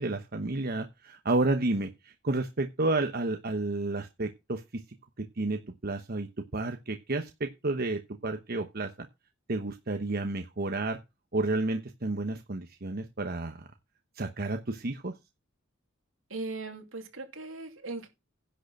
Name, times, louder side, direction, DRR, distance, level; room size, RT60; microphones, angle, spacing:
voice 1, 0.0-4.8 5.2-8.9 9.5-11.0 11.3-13.7 14.2-15.2, right 2 dB, 50° right, 1.0 m, -31 dB
voice 2, 16.3-18.1, right 3 dB, 80° right, 2.7 m, -38 dB
10.5 x 6.7 x 5.9 m
head